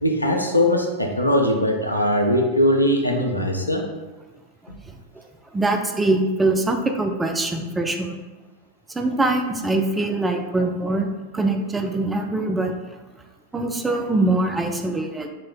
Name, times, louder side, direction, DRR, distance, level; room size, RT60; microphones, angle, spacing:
voice 1, 0.0-3.8, left 1 dB, 85° left, 2 dB, 0.6 m, -20 dB
voice 2, 4.6-5.2 5.5-8.2 8.9-11.1 11.3-13.0 13.5-15.3, right 2 dB, 10° right, 4 dB, 0.5 m, -23 dB
4.4 x 3.1 x 3.6 m, 1.2 s
figure-of-eight pair, 90°, 0 cm